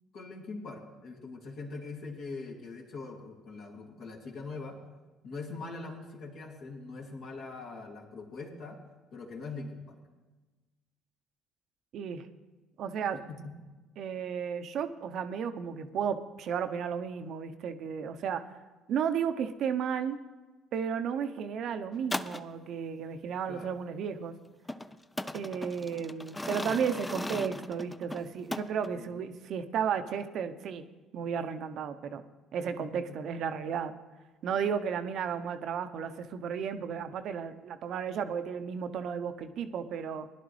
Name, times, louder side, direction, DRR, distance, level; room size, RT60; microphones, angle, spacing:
voice 1, 0.1-4.8 5.2-8.8 9.1-10.0 13.3-13.5 23.5-23.8 28.9-29.2 32.8-33.2, left 3 dB, 65° left, 0 dB, 2.3 m, -42 dB
voice 2, 11.9-12.3 12.8-13.2 14.0-18.4 18.9-20.2 20.7-24.4 25.3-30.8 31.1-32.2 32.5-33.9 34.4-40.3, right 7 dB, 60° right, 9 dB, 0.7 m, -33 dB
sound 1, 21.9-22.5 24.7-28.9, left 1 dB, 15° left, 0.5 m, -37 dB
18.0 x 11.0 x 3.2 m, 1.2 s
hypercardioid pair, 60°, 0 cm